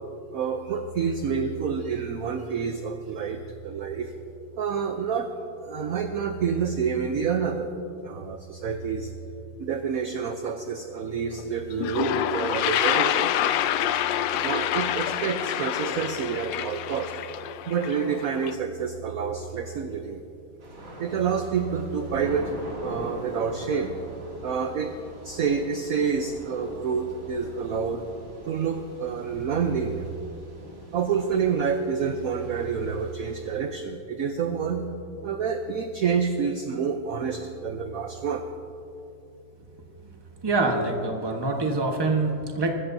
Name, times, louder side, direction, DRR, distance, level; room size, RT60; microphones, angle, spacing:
voice 1, 0.3-4.1 4.6-5.3 5.6-7.7 8.0-9.1 9.6-13.3 14.4-17.1 17.7-20.2 21.0-22.5 22.8-24.0 24.4-25.0 25.2-28.1 28.5-30.1 30.9-34.9 35.2-38.4, right 6 dB, 65° right, 6 dB, 0.8 m, -28 dB
Toilet flush, 11.4-11.5 11.7-18.5, left 11 dB, 75° left, 1.2 m, -27 dB
Thunder / Rain, 20.6-33.6, equal, 85° right, 3.5 m, -43 dB
voice 2, 40.4-42.7, right 3 dB, 15° right, 2 dB, 0.9 m, -25 dB
22.5 x 14.0 x 2.7 m, 2.7 s
omnidirectional pair, 2.2 m